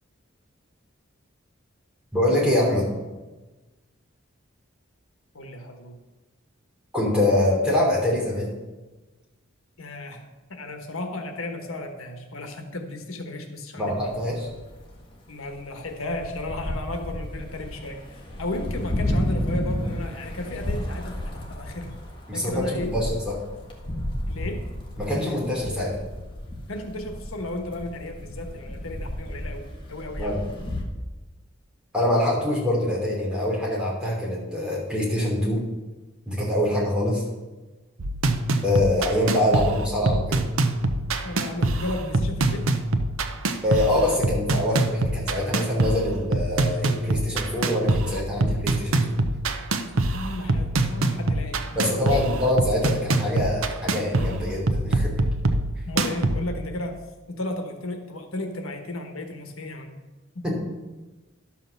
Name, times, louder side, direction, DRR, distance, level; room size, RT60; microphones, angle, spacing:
voice 1, 2.1-2.9 6.9-8.5 13.8-14.5 22.3-23.4 25.0-26.0 30.2-30.4 31.9-35.6 36.3-37.2 38.6-40.4 43.6-49.2 51.7-55.2 60.4-60.5, left 1 dB, 5° right, -5 dB, 3.4 m, -24 dB
voice 2, 5.3-6.0 9.8-10.2 10.5-14.2 15.3-21.9 22.3-22.9 24.3-24.7 26.7-30.4 41.1-42.7 50.1-52.3 55.9-57.0 57.3-60.0 60.3-60.5, left 2 dB, 85° left, 4 dB, 1.4 m, -34 dB
sound 1, 13.9-15.1 15.4-30.8, left 1 dB, 25° left, 1.5 m, -32 dB
sound 2, 38.0-56.5, right 2 dB, 85° right, 0.8 m, -25 dB
11.5 x 5.7 x 6.7 m, 1.2 s
head